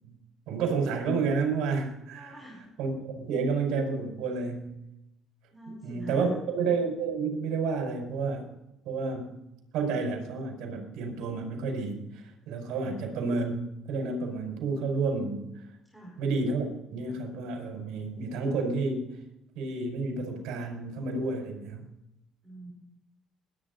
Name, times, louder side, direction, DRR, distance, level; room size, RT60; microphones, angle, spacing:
voice 1, 0.5-2.4 2.8-4.8 5.8-8.5 8.9-9.4 9.7-12.0 12.5-13.6 13.9-15.4 16.2-16.6 16.9-19.1 19.6-21.9, right 4 dB, 80° right, 2 dB, 5.3 m, -30 dB
voice 2, 2.1-2.7 5.5-6.3 12.8-13.0 15.9-16.2 22.4-22.7, right 2 dB, ahead, -3 dB, 4.7 m, -42 dB
20.0 x 9.7 x 4.0 m, 0.86 s
cardioid pair, 110°, 0 cm